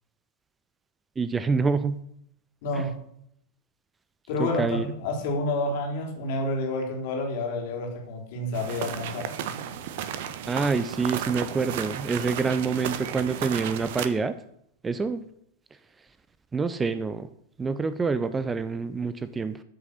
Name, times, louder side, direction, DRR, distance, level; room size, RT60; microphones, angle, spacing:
voice 1, 1.2-2.0 4.4-4.9 10.5-14.4 14.8-15.3 16.5-17.3 17.6-19.6, right 4 dB, 15° right, 13 dB, 0.6 m, -27 dB
voice 2, 2.6-2.9 4.3-9.3, left 2 dB, 50° left, 1 dB, 3.4 m, -29 dB
sound 1, 8.5-14.1, right 9 dB, 50° right, 1.0 m, -33 dB
14.0 x 6.6 x 6.4 m, 0.74 s
figure-of-eight pair, 90°, 0 cm